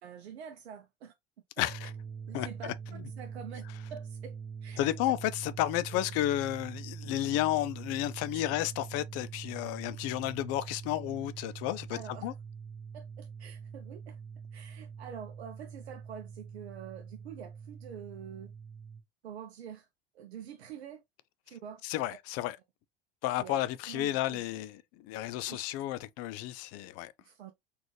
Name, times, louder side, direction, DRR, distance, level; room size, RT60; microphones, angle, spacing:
voice 1, 0.0-1.1 1.6-1.7 2.3-3.6 3.9-4.4 4.6-4.9 5.9-6.1 8.3-8.5 11.4-11.5 11.9-12.3 12.9-14.2 14.5-18.5 19.2-19.9 20.1-21.0 21.5-21.8 22.1-22.2 23.4-23.6 23.9-24.4 25.5-25.7 27.2-27.5, right 8 dB, 85° right, 0.6 m, -46 dB
voice 2, 1.6-1.9 2.3-3.0 4.8-12.3 21.8-22.6 23.2-27.1, left 14 dB, 50° left, 0.5 m, -32 dB
sound 1, 1.6-19.0, right 6 dB, 25° right, 0.9 m, -44 dB
4.0 x 2.5 x 3.1 m
hypercardioid pair, 75°, 32 cm